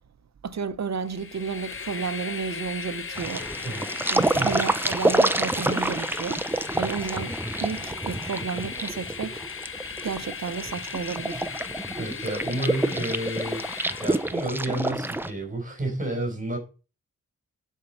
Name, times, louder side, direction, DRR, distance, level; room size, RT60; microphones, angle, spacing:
voice 1, 0.4-3.5 4.1-6.5 6.7-7.3 7.6-9.4 10.0-11.5, right 5 dB, 55° right, 0.8 m, -32 dB
Train, 1.0-14.5, left 6 dB, 40° left, 0.7 m, -37 dB
sound 1, 3.1-15.3, right 1 dB, 5° right, 0.5 m, -28 dB
voice 2, 12.0-13.6 14.0-16.6, right 1 dB, 25° right, 4.4 m, -30 dB
11.0 x 4.6 x 5.4 m
wide cardioid pair, 130°, 32 cm